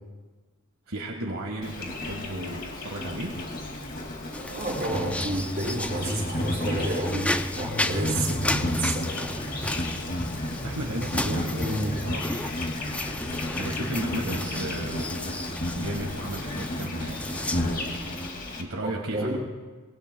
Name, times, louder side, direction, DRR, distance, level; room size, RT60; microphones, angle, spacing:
voice 1, 0.9-3.4 10.6-12.3 13.5-15.4 15.7-17.3 18.6-19.4, right 1 dB, 70° right, 0 dB, 1.7 m, -34 dB
Insect, 1.6-18.6, left 1 dB, 45° left, 2.3 m, -32 dB
sound 1, 4.3-18.3, left 1 dB, 5° left, 0.4 m, -34 dB
voice 2, 4.5-9.3 11.3-12.0 18.8-19.4, right 1 dB, 45° right, -4 dB, 6.4 m, -30 dB
24.5 x 22.0 x 2.3 m, 1.3 s
head